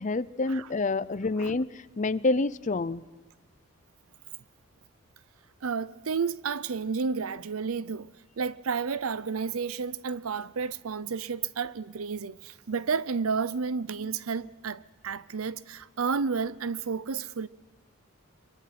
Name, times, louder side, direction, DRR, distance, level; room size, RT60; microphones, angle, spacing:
voice 1, 0.0-3.0, left 3 dB, 35° left, 0.6 m, -28 dB
voice 2, 5.6-8.1 8.4-17.5, right 5 dB, 90° right, 0.6 m, -31 dB
24.5 x 23.0 x 6.0 m
head